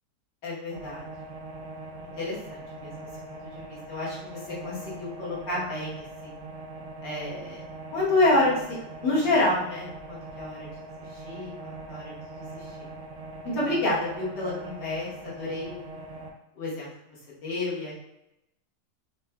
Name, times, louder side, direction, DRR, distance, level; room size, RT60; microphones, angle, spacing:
voice 1, 0.4-1.0 2.2-6.4 7.0-7.6 7.9-8.5 9.0-10.7 11.2-12.6 13.5-16.0 16.6-16.9 17.4-17.9, left 2 dB, 80° left, -8 dB, 1.8 m, -29 dB
sound 1, 0.7-16.3, right 2 dB, 70° right, 0.8 m, -42 dB
4.3 x 2.2 x 2.2 m, 0.85 s
omnidirectional pair, 1.8 m